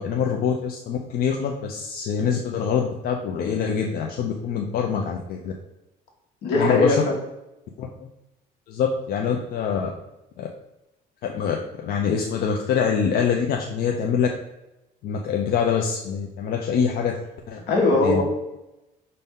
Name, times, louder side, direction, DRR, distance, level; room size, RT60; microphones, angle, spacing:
voice 1, 0.0-5.5 6.5-7.0 7.8-7.9 8.7-9.9 10.4-10.5 11.2-11.6 11.8-14.3 15.0-17.2 17.5-17.6 18.0-18.2, left 7 dB, 65° left, 1 dB, 0.5 m, -24 dB
voice 2, 6.4-7.1 17.7-18.2, left 2 dB, 80° left, 0 dB, 1.3 m, -20 dB
5.4 x 2.7 x 3.6 m, 0.94 s
cardioid pair, 110°, 17 cm